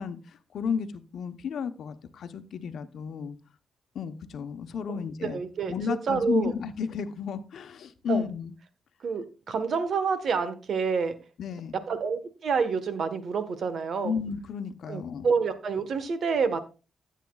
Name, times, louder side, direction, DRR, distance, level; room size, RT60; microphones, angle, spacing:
voice 1, 0.0-3.4 3.9-5.4 5.7-8.5 11.4-11.8 14.0-15.3, left 6 dB, 70° left, 10 dB, 0.9 m, -33 dB
voice 2, 4.9-6.5 8.1-8.3 9.0-11.1 11.9-14.2 14.9-16.6, right 5 dB, 60° right, 10 dB, 1.3 m, -28 dB
14.5 x 8.3 x 2.3 m, 0.32 s
cardioid pair, 100°, 0 cm